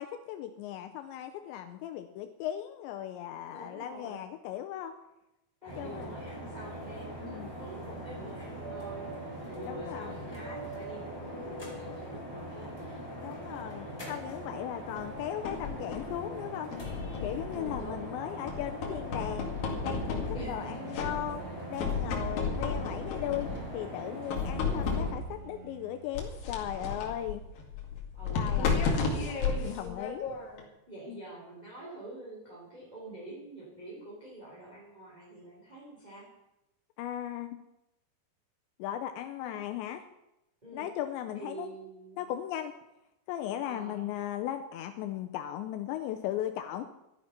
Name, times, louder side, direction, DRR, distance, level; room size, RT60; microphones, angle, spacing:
voice 1, 0.0-4.9 5.6-6.1 7.2-7.5 9.7-10.2 13.2-16.8 17.2-19.5 19.8-21.4 21.7-27.4 28.3-28.8 29.6-30.3 31.1-31.2 37.0-37.6 38.8-40.1 40.7-41.7 42.2-42.7 43.3-46.8, left 11 dB, 85° left, 6 dB, 2.9 m, -37 dB
voice 2, 3.5-4.2 5.6-13.0 13.3-13.4 17.5-18.5 20.3-20.9 28.1-30.0 30.9-36.3 39.4-39.6 40.6-40.9 41.3-42.3 43.6-44.0, right 2 dB, 10° right, -6 dB, 3.0 m, -46 dB
sound 1, 5.7-25.1, equal, 5° left, 4.2 m, -41 dB
sound 2, 15.0-16.2 16.7-18.1 18.5-20.6 20.9-21.5 21.8-23.7 24.3-25.4 26.1-30.6, left 5 dB, 55° left, 3.4 m, -33 dB
Bowed string instrument, 20.5-27.6, right 9 dB, 70° right, 2.9 m, -51 dB
13.0 x 12.0 x 5.9 m, 0.91 s
omnidirectional pair, 5.3 m